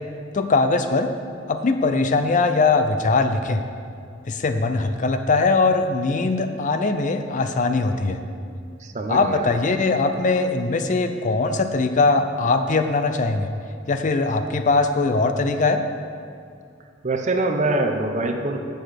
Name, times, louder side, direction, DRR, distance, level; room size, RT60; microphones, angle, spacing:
voice 1, 0.3-1.1 1.5-3.6 4.3-8.2 9.1-13.5 13.9-15.8, left 3 dB, 40° left, 8 dB, 0.5 m, -21 dB
voice 2, 8.8-9.5 17.0-18.6, right 2 dB, 40° right, 4 dB, 0.8 m, -24 dB
7.8 x 6.7 x 6.4 m, 2.3 s
head